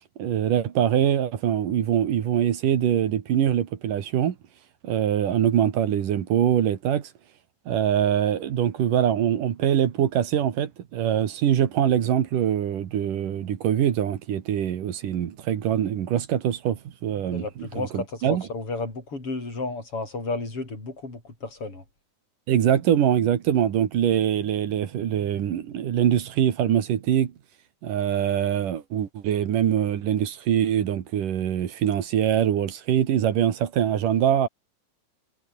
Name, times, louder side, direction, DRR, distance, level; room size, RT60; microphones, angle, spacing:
voice 1, 0.2-4.3 4.8-7.1 7.7-18.5 22.5-27.3 27.8-34.5, right 10 dB, 65° right, 3.3 m, -23 dB
voice 2, 17.3-21.8, left 3 dB, 35° left, 8.7 m, -32 dB
omnidirectional pair, 4.2 m